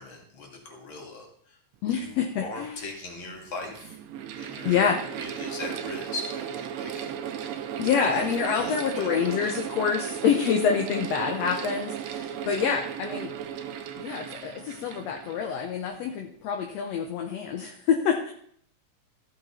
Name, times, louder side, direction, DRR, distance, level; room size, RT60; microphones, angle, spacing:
voice 1, 0.0-1.6 1.9-4.0 4.4-4.8 5.1-7.2 7.8-9.6, left 3 dB, 45° left, 1 dB, 2.6 m, -40 dB
voice 2, 1.8-2.8 4.7-5.0 7.8-13.3 14.0-18.3, left 7 dB, 70° left, 3 dB, 1.9 m, -27 dB
Mechanical fan, 2.4-2.5 3.4-16.0, right 9 dB, 75° right, 1.8 m, -36 dB
14.0 x 6.5 x 4.3 m, 0.64 s
omnidirectional pair, 3.4 m